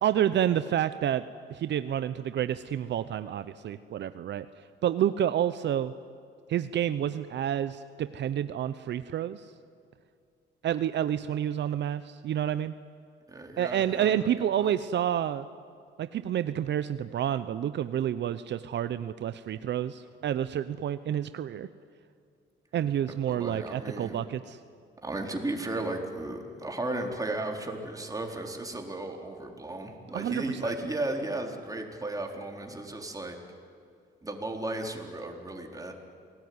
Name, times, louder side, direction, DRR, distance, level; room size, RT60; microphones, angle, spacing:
voice 1, 0.0-1.2 1.5-4.5 4.8-5.9 6.5-9.4 10.6-12.7 13.6-15.5 16.0-21.7 22.7-24.6 30.1-30.7, right 10 dB, 65° right, 13 dB, 0.7 m, -29 dB
voice 2, 13.3-14.3 14.6-14.7 23.1-24.2 25.0-33.3 34.2-35.9, right 2 dB, 15° right, 2 dB, 4.1 m, -35 dB
28.0 x 19.0 x 9.6 m, 2.3 s
cardioid pair, 90°, 20 cm